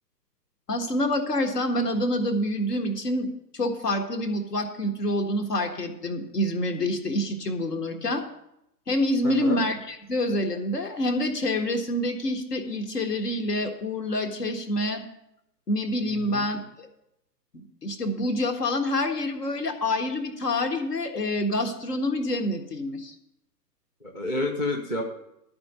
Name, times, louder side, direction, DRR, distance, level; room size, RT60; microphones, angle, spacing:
voice 1, 0.7-8.2 8.9-15.0 15.7-16.9 17.8-23.1, left 1 dB, 70° left, 5 dB, 1.6 m, -27 dB
voice 2, 9.2-9.6 16.1-16.5 24.0-25.0, left 2 dB, 15° left, -1 dB, 0.5 m, -30 dB
12.0 x 4.4 x 8.0 m, 0.83 s
figure-of-eight pair, 125°, 50 cm